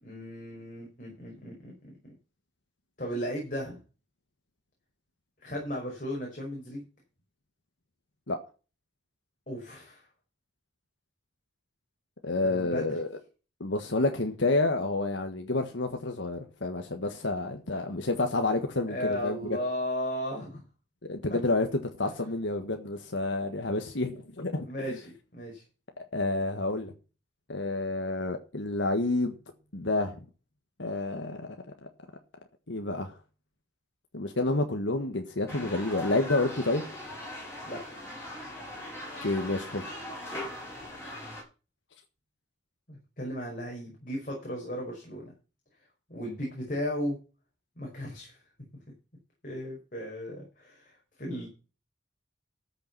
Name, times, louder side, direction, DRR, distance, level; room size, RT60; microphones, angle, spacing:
voice 1, 0.0-2.1 3.0-3.8 5.4-6.8 9.5-10.0 12.4-12.9 18.9-20.6 21.3-21.4 22.0-22.1 24.7-25.6 37.7-37.8 42.9-45.3 46.1-47.2 47.8-48.4 49.4-50.9 51.2-51.5, equal, 45° left, -1 dB, 5.4 m, -35 dB
voice 2, 12.2-13.1 13.6-19.4 21.1-25.0 26.1-26.9 27.5-29.4 29.7-30.2 30.8-31.5 31.8-31.9 32.7-33.1 34.1-36.8 39.2-39.9, left 2 dB, 85° left, 5 dB, 1.5 m, -29 dB
sound 1, 35.5-41.4, left 1 dB, 15° left, 7.1 m, -40 dB
13.5 x 7.0 x 6.0 m, 0.34 s
head